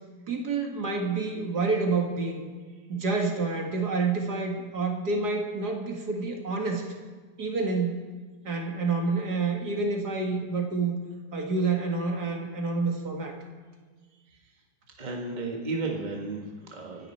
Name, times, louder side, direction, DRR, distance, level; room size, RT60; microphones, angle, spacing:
voice 1, 0.3-2.4 2.9-6.9 7.4-8.0 8.4-10.9 11.3-13.4, right 4 dB, 80° right, 2 dB, 2.5 m, -28 dB
voice 2, 15.0-17.1, right 3 dB, 30° right, 0 dB, 1.6 m, -34 dB
25.5 x 11.0 x 4.4 m, 1.4 s
omnidirectional pair, 1.7 m